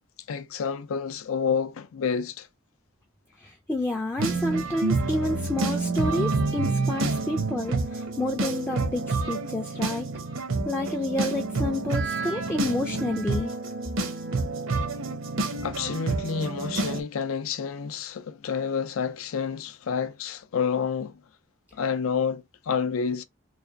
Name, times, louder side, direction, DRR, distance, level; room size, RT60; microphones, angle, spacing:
voice 1, 0.3-2.5 15.6-21.2 21.7-23.2, left 6 dB, 75° left, 0.4 m, -29 dB
voice 2, 3.4-10.1 10.7-13.5, left 1 dB, 10° left, 0.4 m, -29 dB
sound 1, 4.2-17.0, right 3 dB, 65° right, 0.8 m, -28 dB
3.3 x 2.4 x 3.8 m
head